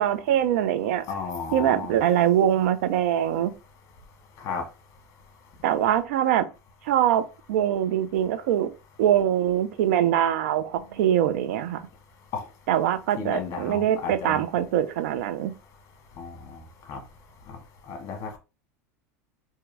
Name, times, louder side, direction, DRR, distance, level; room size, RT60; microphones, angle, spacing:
voice 1, 0.0-1.0 1.5-3.5 5.6-6.5 6.8-7.2 7.5-8.7 9.0-11.9 12.7-15.5, right 10 dB, 75° right, 0.6 m, -23 dB
voice 2, 1.1-2.0 4.4-4.6 12.3-12.4 13.2-14.4 16.2-16.6 16.9-17.0 17.9-18.4, left 5 dB, 45° left, 1.4 m, -33 dB
3.6 x 2.9 x 3.3 m
supercardioid pair, 105°, 8 cm